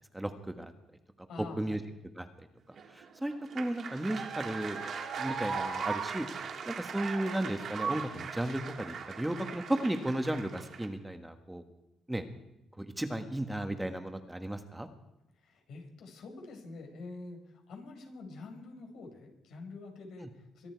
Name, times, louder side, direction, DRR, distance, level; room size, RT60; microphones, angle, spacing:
voice 1, 0.1-0.7 1.6-1.8 2.2-2.3 2.9-4.8 5.2-6.3 6.7-11.6 12.1-12.2 12.8-14.9 20.2-20.3, right 1 dB, 10° right, 7 dB, 1.6 m, -34 dB
voice 2, 1.3-1.8 15.4-20.7, left 3 dB, 75° left, 2 dB, 5.2 m, -46 dB
sound 1, 2.8-10.9, right 5 dB, 60° right, 2.6 m, -38 dB
23.5 x 12.5 x 4.7 m, 0.86 s
cardioid pair, 90°, 0 cm